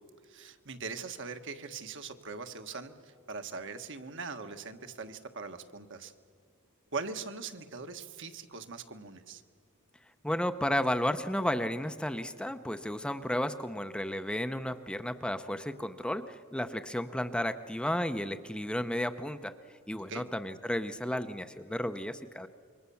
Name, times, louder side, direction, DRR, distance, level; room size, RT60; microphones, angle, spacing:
voice 1, 0.3-6.1 6.9-9.4 20.1-20.3, right 4 dB, 60° right, 7 dB, 1.5 m, -41 dB
voice 2, 10.2-19.5 19.9-22.5, left 1 dB, 5° left, 9 dB, 0.6 m, -33 dB
27.5 x 23.5 x 7.1 m, 2.1 s
head